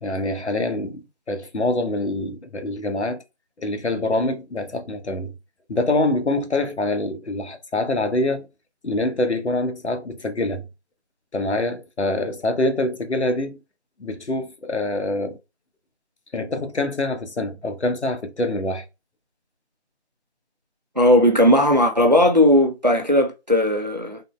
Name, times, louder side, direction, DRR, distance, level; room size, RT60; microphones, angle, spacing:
voice 1, 0.0-3.2 3.6-5.3 5.7-8.5 8.8-10.7 11.3-13.6 14.0-15.4 16.3-18.8, left 2 dB, 75° left, 0.8 m, -25 dB
voice 2, 21.0-24.2, left 1 dB, 40° right, 0.5 m, -17 dB
3.8 x 2.2 x 2.3 m
figure-of-eight pair, 170°, 34 cm